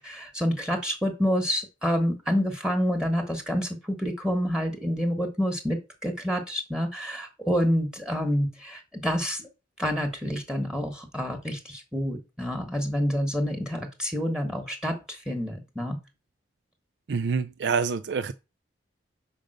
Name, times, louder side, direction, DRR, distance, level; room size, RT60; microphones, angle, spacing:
voice 1, 0.0-9.5 9.8-16.0, equal, 5° right, 1.2 m, -28 dB
voice 2, 17.1-18.3, right 5 dB, 65° right, 0.4 m, -26 dB
5.2 x 5.1 x 6.4 m
head